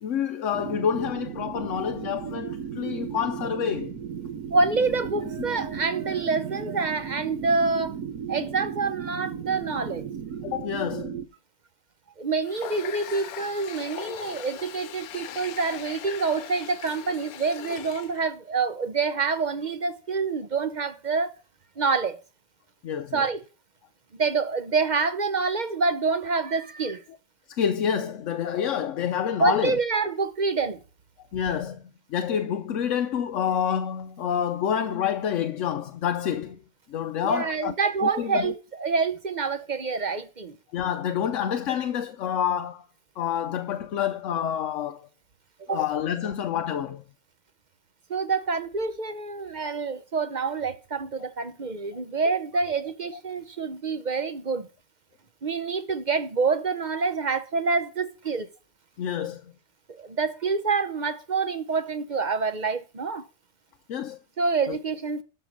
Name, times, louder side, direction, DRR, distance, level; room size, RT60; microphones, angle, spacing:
voice 1, 0.0-4.0 10.4-11.2 22.8-23.2 27.5-29.8 31.3-31.8 32.1-36.6 36.9-37.7 38.0-38.5 40.7-42.9 43.2-45.1 45.7-47.0 51.9-52.0 59.0-59.5 63.9-64.2 64.7-64.8, left 8 dB, 65° left, 0.9 m, -28 dB
sound 1, 0.5-11.3, right 7 dB, 75° right, 1.3 m, -35 dB
voice 2, 4.5-8.0 8.3-10.1 12.2-21.3 21.8-22.2 23.1-23.4 24.2-27.0 29.4-30.8 37.2-40.6 45.7-45.8 48.1-54.7 55.4-58.5 59.9-63.2 64.4-65.2, right 4 dB, 40° right, 0.8 m, -27 dB
Water tap faucet, 12.4-18.2, left 10 dB, 80° left, 1.2 m, -40 dB
12.5 x 5.8 x 6.0 m
omnidirectional pair, 1.5 m